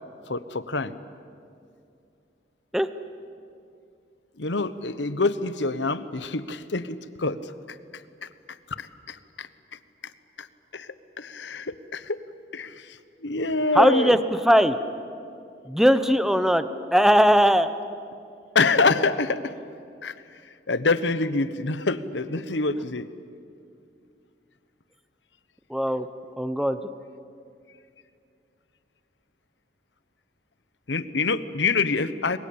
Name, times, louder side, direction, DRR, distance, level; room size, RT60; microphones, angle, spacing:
voice 1, 0.3-0.9 4.4-7.4 8.8-9.5 10.7-10.9 11.2-12.2 12.5-12.7 13.2-14.2 18.5-19.5 20.0-20.1 20.7-23.1 30.9-32.4, left 3 dB, 75° left, 13 dB, 1.1 m, -26 dB
voice 2, 13.7-14.8 15.7-16.7 16.9-17.7 25.7-26.1 26.4-26.8, equal, ahead, 11 dB, 0.9 m, -19 dB
30.0 x 22.5 x 8.7 m, 2.4 s
head